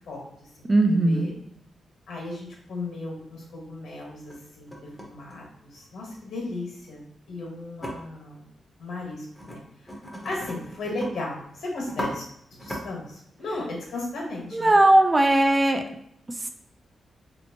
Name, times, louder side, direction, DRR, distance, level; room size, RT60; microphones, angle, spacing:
voice 1, 0.1-1.3 2.1-8.4 8.8-9.6 10.2-12.3 12.6-14.7, left 2 dB, 90° left, -2 dB, 1.4 m, -36 dB
voice 2, 0.6-1.3 14.5-15.8 16.4-16.5, right 1 dB, 25° right, 5 dB, 0.3 m, -19 dB
sound 1, 3.2-3.3 4.0-4.4 4.7-6.1 7.8-7.9 9.3-9.6 9.9-11.1 11.4-11.5 11.8-12.1 12.6-12.8, equal, 5° left, 0.7 m, -36 dB
3.2 x 2.8 x 2.9 m, 0.72 s
wide cardioid pair, 120°, 0 cm